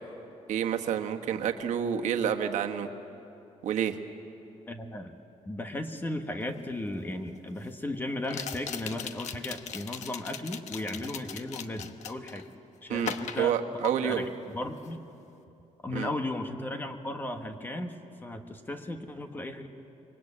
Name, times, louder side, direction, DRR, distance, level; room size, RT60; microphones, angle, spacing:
voice 1, 0.5-2.9 3.6-4.0 12.9-14.3 15.9-16.1, right 8 dB, 80° right, 5 dB, 1.4 m, -29 dB
voice 2, 4.7-5.1 5.4-12.4 12.8-13.6 13.8-14.3 14.5-15.0 15.8-19.7, left 1 dB, 15° left, 6 dB, 1.3 m, -35 dB
sound 1, 6.6-6.7 8.2-12.5 13.0-14.3 14.6-15.0, left 8 dB, 75° left, 1.1 m, -39 dB
26.5 x 23.0 x 8.6 m, 2.9 s
cardioid pair, 180°, 12 cm